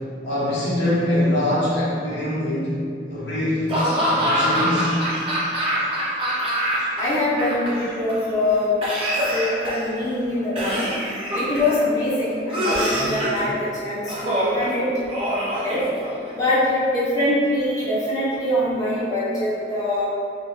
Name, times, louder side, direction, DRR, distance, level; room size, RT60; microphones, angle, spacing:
voice 1, 0.2-2.7 3.1-3.7 4.1-4.9, left 1 dB, 75° left, -9 dB, 0.8 m, -23 dB
Laughter / Cough, 3.7-7.0 7.3-8.1 8.8-9.9 10.6-11.8 12.5-13.4 14.1-14.7 15.1-16.3, equal, 30° right, 0.5 m, -24 dB
voice 2, 7.0-8.7 9.3-10.8 11.3-14.9 15.6-15.8 16.4-20.1, left 1 dB, 20° left, -11 dB, 0.5 m, -23 dB
2.1 x 2.0 x 3.0 m, 2.4 s
head